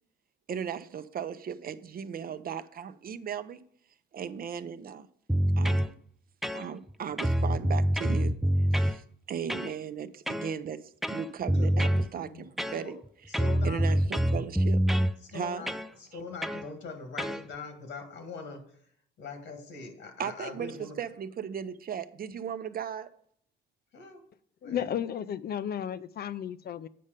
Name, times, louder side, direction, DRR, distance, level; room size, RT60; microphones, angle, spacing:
voice 1, 0.5-3.6 4.1-5.1 5.6-5.9 6.5-8.4 8.7-13.0 13.6-14.8 15.3-15.7 20.2-23.1, right 7 dB, 50° right, 0.6 m, -37 dB
sound 1, 5.3-5.9 6.4-6.9 7.2-9.0 9.5-9.7 10.3-10.5 11.0-12.1 12.6-13.0 13.3-15.1 15.7-15.9 16.4-16.6 17.2-17.4, equal, ahead, 0.4 m, -26 dB
voice 2, 11.5-12.5 12.8-12.9 13.3-14.1 15.2-15.7 16.0-18.8 19.2-21.0 23.9-24.2 24.6-24.9, left 4 dB, 75° left, 1.8 m, -42 dB
voice 3, 24.6-26.9, left 9 dB, 55° left, 0.5 m, -33 dB
8.5 x 5.4 x 5.1 m
cardioid pair, 90°, 20 cm